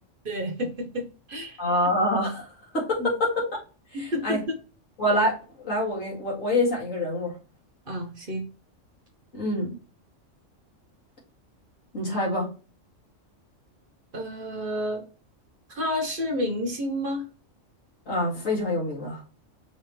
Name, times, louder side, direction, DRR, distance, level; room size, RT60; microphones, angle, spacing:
voice 1, 0.2-1.6 3.0-3.1 3.9-4.6 7.9-8.5 14.1-15.1 15.7-17.3, left 1 dB, 45° right, 4 dB, 1.1 m, -30 dB
voice 2, 1.6-2.5 2.7-3.6 3.9-4.4 5.0-7.3 9.3-9.7 11.9-12.5 18.1-19.2, left 1 dB, 85° left, -3 dB, 2.6 m, -26 dB
5.5 x 3.2 x 3.0 m, 0.34 s
omnidirectional pair, 1.3 m